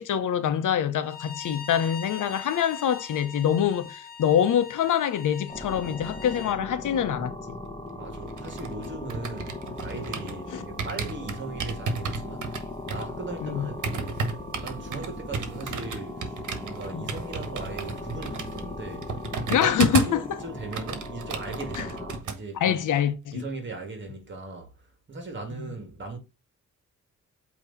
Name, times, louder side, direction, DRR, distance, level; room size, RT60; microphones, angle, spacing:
voice 1, 0.0-7.6 10.5-10.6 13.4-13.7 16.9-17.1 19.5-20.4 21.7-21.9 22.6-23.4 25.6-25.7, left 9 dB, 90° left, 1.0 m, -25 dB
Bowed string instrument, 1.0-6.6, left 6 dB, 30° left, 1.0 m, -42 dB
sound 1, 5.5-22.2, left 2 dB, 10° left, 1.2 m, -38 dB
voice 2, 7.9-12.6 12.9-14.3 14.6-19.1 19.5-22.9 23.3-24.7 25.1-26.2, right 3 dB, 40° right, 2.3 m, -38 dB
sound 2, 8.1-10.4 10.8-20.3 20.6-22.4 22.7-22.9, right 5 dB, 80° right, 1.4 m, -33 dB
8.6 x 3.2 x 4.1 m
wide cardioid pair, 155°, 30 cm